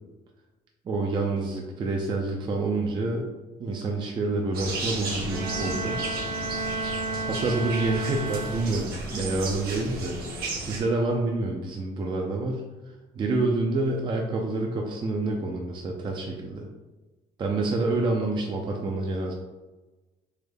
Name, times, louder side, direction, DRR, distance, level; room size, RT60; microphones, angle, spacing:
voice 1, 0.9-3.3 3.6-6.0 7.3-10.2 10.6-16.7 17.4-19.3, right 2 dB, 30° right, 0 dB, 0.4 m, -28 dB
sound 1, 4.5-10.8, right 2 dB, 65° right, 0.9 m, -34 dB
Bowed string instrument, 5.3-9.1, right 3 dB, 85° right, 0.5 m, -32 dB
3.4 x 2.1 x 3.3 m, 1.2 s
cardioid pair, 110°, 17 cm